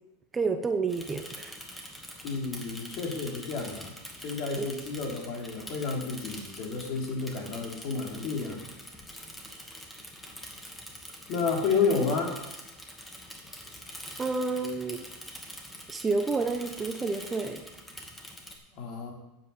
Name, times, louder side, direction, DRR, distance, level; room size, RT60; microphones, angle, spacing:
voice 1, 0.3-1.6 4.6-4.7 14.2-15.0 15.9-17.6, right 4 dB, 20° right, 7 dB, 0.9 m, -30 dB
Bicycle / Mechanisms, 0.9-18.6, left 1 dB, 10° left, 2.0 m, -45 dB
voice 2, 2.2-3.9 4.2-8.6 11.3-12.3 18.7-19.1, left 4 dB, 55° left, 0 dB, 3.3 m, -30 dB
9.2 x 7.8 x 7.1 m, 0.94 s
supercardioid pair, 120°, 0 cm